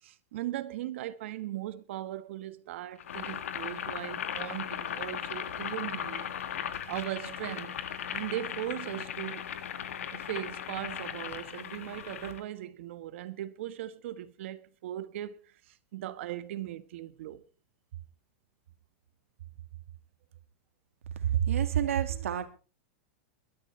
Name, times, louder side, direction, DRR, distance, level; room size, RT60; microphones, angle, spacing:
voice 1, 0.0-6.3 6.9-7.8 8.1-9.5 10.1-17.4, right 13 dB, 65° right, 1.4 m, -38 dB
Boiling, 3.0-12.4, left 9 dB, 85° left, 2.0 m, -37 dB
voice 2, 21.2-22.5, right 10 dB, 85° right, 2.2 m, -28 dB
21.5 x 13.0 x 3.3 m
supercardioid pair, 145°, 7 cm